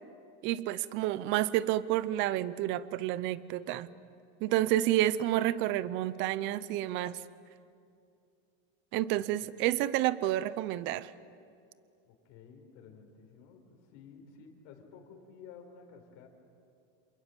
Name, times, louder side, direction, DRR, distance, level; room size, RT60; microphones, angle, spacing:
voice 1, 0.4-3.9 4.4-7.2 8.9-11.1, right 14 dB, 35° right, 17 dB, 0.6 m, -30 dB
voice 2, 12.0-16.3, left 6 dB, 50° left, 3 dB, 4.4 m, -53 dB
28.5 x 27.5 x 7.4 m, 2.5 s
cardioid pair, 180°, 35 cm